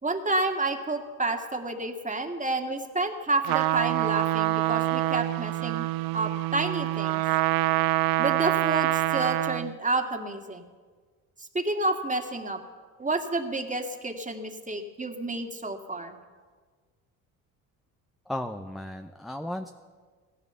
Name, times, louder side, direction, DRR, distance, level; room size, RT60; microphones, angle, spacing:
voice 1, 0.0-5.9 6.1-7.2 8.2-10.6 11.5-12.6 13.0-16.2, right 2 dB, 20° right, 4 dB, 2.2 m, -29 dB
Trumpet, 3.4-9.7, right 17 dB, 65° right, 0.5 m, -26 dB
voice 2, 18.3-19.7, left 1 dB, ahead, 6 dB, 0.8 m, -35 dB
15.5 x 12.5 x 7.0 m, 1.5 s
supercardioid pair, 65°, 38 cm